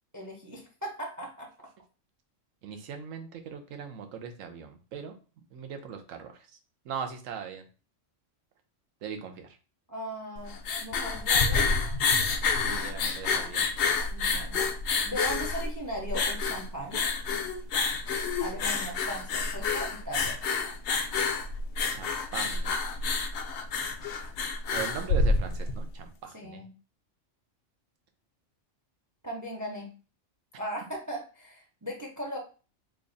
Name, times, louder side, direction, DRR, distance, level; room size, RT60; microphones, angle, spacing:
voice 1, 0.1-1.5 9.9-10.5 10.8-11.7 14.1-14.6 15.0-17.1 18.4-20.4 26.3-26.7 29.2-29.9 30.6-32.4, equal, 25° right, 0 dB, 0.4 m, -38 dB
voice 2, 2.6-5.2 5.5-6.3 6.8-7.6 9.0-9.6 12.5-13.7 21.9-22.7 24.7-26.6, right 7 dB, 85° right, 6 dB, 1.1 m, -39 dB
sound 1, 10.4-25.8, left 4 dB, 70° left, 0.8 m, -28 dB
3.3 x 2.4 x 3.8 m, 0.35 s
omnidirectional pair, 1.3 m